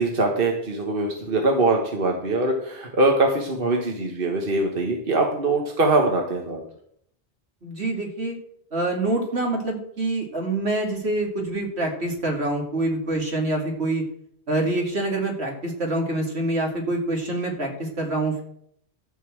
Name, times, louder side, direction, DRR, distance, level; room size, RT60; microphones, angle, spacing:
voice 1, 0.0-6.6, right 2 dB, 60° right, 1 dB, 1.7 m, -22 dB
voice 2, 7.6-8.4 8.7-14.0 14.5-18.4, right 2 dB, 80° right, 1 dB, 2.9 m, -26 dB
13.5 x 5.5 x 7.8 m, 0.68 s
omnidirectional pair, 1.1 m